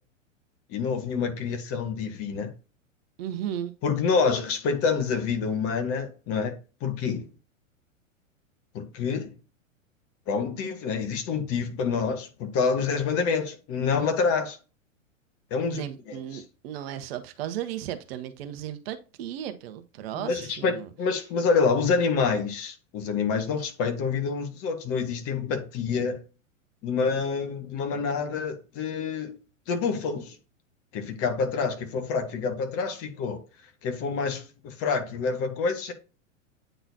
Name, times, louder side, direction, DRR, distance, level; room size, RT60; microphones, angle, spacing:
voice 1, 0.7-2.5 3.8-6.5 6.8-7.3 8.7-9.3 10.3-14.6 15.5-16.4 20.1-26.2 26.8-29.4 29.7-30.4 30.9-33.4 33.8-35.9, left 5 dB, 35° left, 1.4 m, -27 dB
voice 2, 3.2-3.7 15.7-20.9, right 11 dB, 50° right, 0.9 m, -35 dB
9.0 x 4.0 x 2.7 m
figure-of-eight pair, 100°, 40 cm